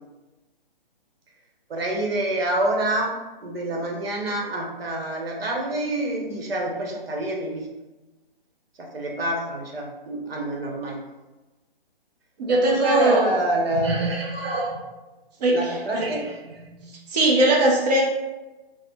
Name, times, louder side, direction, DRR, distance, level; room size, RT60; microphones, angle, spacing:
voice 1, 1.7-3.2 3.4-7.7 8.8-11.0 12.5-14.8 15.5-17.0, right 1 dB, 85° right, 0 dB, 0.9 m, -27 dB
voice 2, 12.4-13.3 15.4-16.1 17.1-18.0, right 1 dB, 45° right, -2 dB, 0.6 m, -20 dB
3.8 x 2.0 x 3.0 m, 1.1 s
hypercardioid pair, 160°, 29 cm